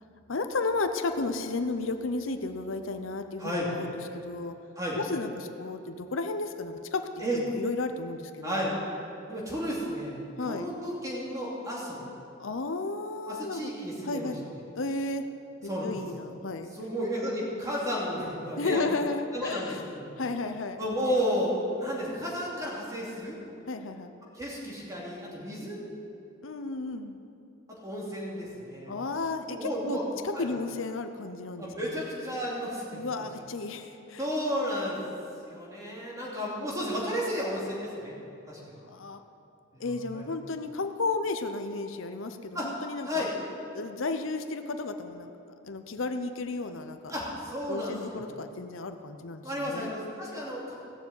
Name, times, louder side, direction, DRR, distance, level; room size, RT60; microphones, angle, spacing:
voice 1, 0.3-4.5 5.0-7.0 7.3-8.7 10.4-10.7 12.4-13.7 14.0-14.4 14.7-15.2 15.8-16.7 18.6-19.8 20.2-20.8 23.7-24.1 26.4-27.2 28.9-30.0 30.2-32.0 32.9-34.3 38.8-39.2 39.8-43.2 43.7-45.3 45.6-47.1 47.7-49.9, left 3 dB, 75° left, 7 dB, 0.7 m, -33 dB
voice 2, 8.4-8.8 9.3-12.0 13.3-14.3 15.6-15.9 16.7-18.8 19.3-20.1 20.8-23.4 24.3-25.8 27.8-29.0 29.5-30.0 30.3-30.5 31.6-33.0 34.2-35.0 35.4-38.2 38.5-38.8 39.7-40.3 42.5-42.7 43.0-43.3 47.1-48.3 49.4-50.7, equal, 15° right, -5 dB, 2.7 m, -32 dB
16.0 x 7.1 x 8.1 m, 2.7 s
head